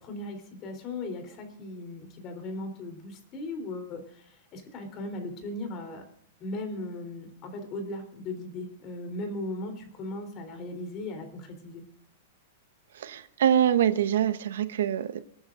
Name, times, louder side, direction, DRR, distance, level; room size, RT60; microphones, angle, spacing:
voice 1, 0.0-6.0 6.4-11.8, left 2 dB, 30° left, 6 dB, 3.5 m, -37 dB
voice 2, 12.9-15.2, right 10 dB, 80° right, 12 dB, 1.0 m, -25 dB
26.5 x 9.7 x 2.6 m, 0.70 s
supercardioid pair, 160°, 0 cm